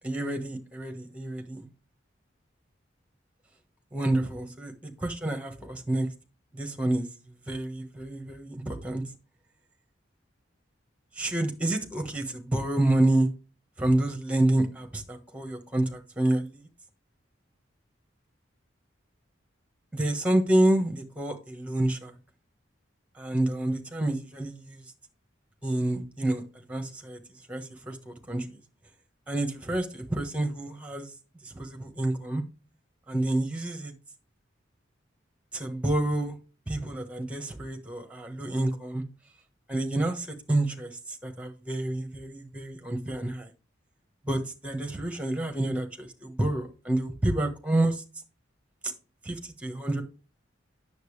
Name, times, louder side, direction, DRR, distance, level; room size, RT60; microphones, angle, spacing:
voice 1, 0.0-1.6 3.9-6.1 6.5-7.1 7.5-9.0 11.1-13.3 13.8-16.6 19.9-22.1 23.1-24.8 25.6-27.2 27.5-28.6 29.3-31.1 31.4-32.4 33.1-33.9 35.5-36.4 36.7-39.0 39.7-43.5 44.2-48.0 49.2-50.0, right 1 dB, 5° right, 1.4 m, -28 dB
9.3 x 7.2 x 3.3 m
head